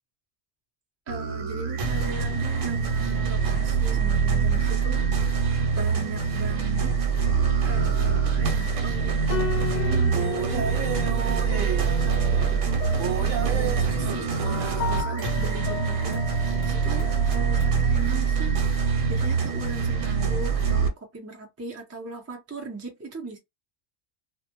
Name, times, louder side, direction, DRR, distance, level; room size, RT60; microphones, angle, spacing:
voice 1, 1.1-5.1 5.6-6.9 7.6-10.7 11.2-12.8 13.1-23.4, right 2 dB, 20° right, 0.4 m, -39 dB
sound 1, 1.1-20.9, right 6 dB, 85° right, 1.0 m, -24 dB
sound 2, 7.1-17.7, left 7 dB, 70° left, 0.4 m, -37 dB
2.1 x 2.1 x 2.9 m
omnidirectional pair, 1.3 m